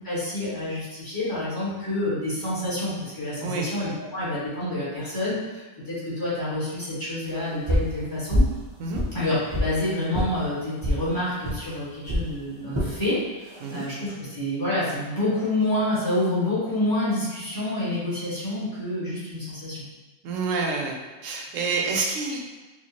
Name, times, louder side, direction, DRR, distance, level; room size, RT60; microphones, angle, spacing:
voice 1, 0.0-8.4 9.1-19.9, left 1 dB, 15° left, -11 dB, 1.4 m, -28 dB
sound 1, 7.7-7.9 8.3-8.6 8.9-9.7 10.1-10.3 10.8-11.0 11.4-11.6 12.1-12.3 12.7-12.9 13.5-13.8, equal, 30° right, 0.5 m, -24 dB
voice 2, 20.2-21.0 21.2-22.5, right 4 dB, 85° right, 1 dB, 1.0 m, -28 dB
4.4 x 2.4 x 2.8 m, 1.3 s
omnidirectional pair, 1.3 m